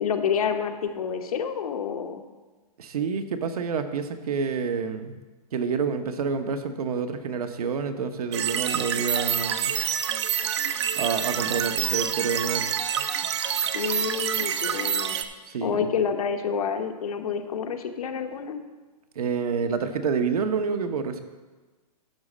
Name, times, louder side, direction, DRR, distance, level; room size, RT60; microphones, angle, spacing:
voice 1, 0.0-2.2 13.7-15.2 15.6-18.6, left 7 dB, 65° left, 6 dB, 1.0 m, -28 dB
voice 2, 2.8-5.2 5.5-9.7 10.9-12.6 15.5-15.9 19.2-21.2, right 5 dB, 65° right, 7 dB, 1.0 m, -28 dB
sound 1, 8.3-15.2, right 8 dB, 45° right, 0.6 m, -27 dB
12.0 x 4.1 x 7.3 m, 1.3 s
hypercardioid pair, 175°, 21 cm